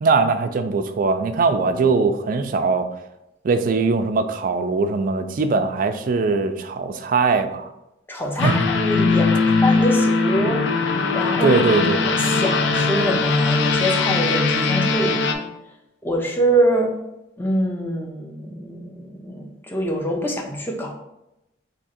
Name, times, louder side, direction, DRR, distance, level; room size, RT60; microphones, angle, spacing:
voice 1, 0.0-2.9 3.4-7.7 8.4-8.6 11.4-12.0, right 4 dB, 45° right, 8 dB, 0.3 m, -20 dB
voice 2, 8.1-10.6 11.1-11.6 12.1-15.5 16.0-16.9 17.4-20.9, right 1 dB, 10° left, 0 dB, 0.6 m, -24 dB
sound 1, 8.4-15.3, left 4 dB, 65° left, 0.4 m, -20 dB
3.5 x 2.8 x 4.2 m, 0.88 s
head